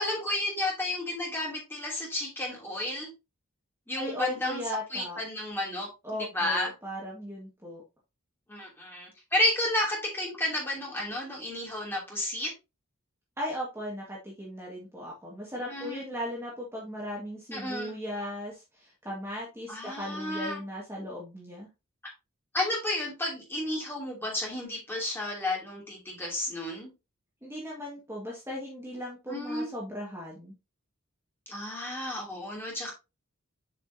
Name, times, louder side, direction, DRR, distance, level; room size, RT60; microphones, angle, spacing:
voice 1, 0.0-3.1 3.9-5.9 6.2-6.7 8.5-12.5 15.6-16.0 17.5-17.9 19.7-20.6 22.0-22.1 22.5-26.9 29.3-29.7 31.5-32.9, left 1 dB, 10° left, -2 dB, 2.8 m, -32 dB
voice 2, 4.0-5.2 6.0-7.8 13.4-21.7 27.4-30.5, equal, 10° right, -4 dB, 1.7 m, -37 dB
7.2 x 6.0 x 2.7 m, 0.26 s
head